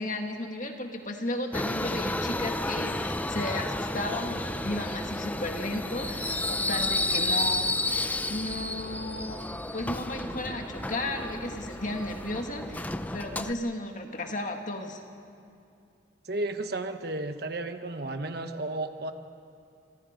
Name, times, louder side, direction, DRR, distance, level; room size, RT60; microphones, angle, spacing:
voice 1, 0.0-9.4 9.7-12.9 13.1-15.0, left 1 dB, 40° left, 4 dB, 2.0 m, -34 dB
Subway metro underground, 1.5-13.5, left 2 dB, 10° left, 0.6 m, -31 dB
voice 2, 16.2-19.1, right 2 dB, 55° right, 8 dB, 1.2 m, -33 dB
28.5 x 25.5 x 5.2 m, 2.5 s
head